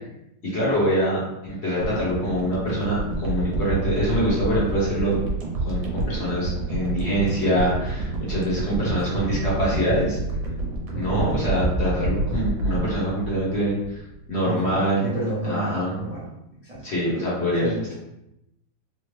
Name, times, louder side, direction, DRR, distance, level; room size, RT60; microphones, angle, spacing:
voice 1, 0.4-1.2 1.5-5.2 5.6-10.2 10.9-15.0 15.5-15.9 16.8-17.9, equal, 40° left, -8 dB, 1.0 m, -24 dB
sound 1, 1.8-14.1 14.4-14.6, right 2 dB, 80° right, 1.4 m, -28 dB
voice 2, 10.9-11.4 14.4-16.3 16.6-16.8 17.6-17.9, right 1 dB, 55° right, -10 dB, 0.4 m, -30 dB
3.9 x 2.1 x 3.1 m, 0.86 s
omnidirectional pair, 2.1 m